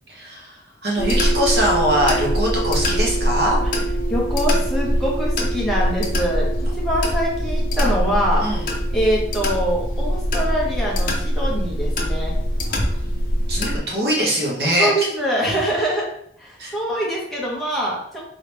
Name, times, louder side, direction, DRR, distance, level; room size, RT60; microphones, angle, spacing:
voice 1, 0.1-3.6 8.4-8.6 13.5-15.1 16.6-16.7, equal, 65° right, -3 dB, 1.2 m, -22 dB
sound 1, 1.0-13.8, equal, 50° left, 0.7 m, -22 dB
voice 2, 4.1-8.5 8.9-12.3 14.8-16.1 16.4-18.3, equal, ahead, -5 dB, 1.1 m, -24 dB
3.8 x 3.2 x 3.4 m, 0.69 s
head